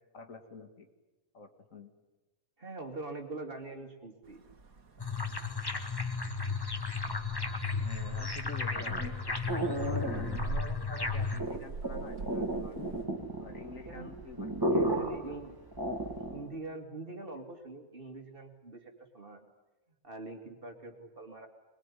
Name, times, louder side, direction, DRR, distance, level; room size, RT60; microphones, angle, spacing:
voice 1, 0.1-0.9 1.3-1.9 7.8-9.2 9.7-12.8 13.4-15.4, left 3 dB, 60° left, 6 dB, 2.4 m, -48 dB
voice 2, 2.6-4.4 13.9-14.1 14.7-15.6 16.3-19.5 20.0-21.5, right 2 dB, 40° right, 4 dB, 2.6 m, -43 dB
sound 1, 4.2-13.1, right 3 dB, 70° right, 2.2 m, -44 dB
sound 2, 5.0-11.4, left 4 dB, 15° left, 1.3 m, -34 dB
sound 3, 8.7-16.5, right 1 dB, 15° right, 2.6 m, -34 dB
22.0 x 21.5 x 9.9 m, 1.1 s
omnidirectional pair, 1.5 m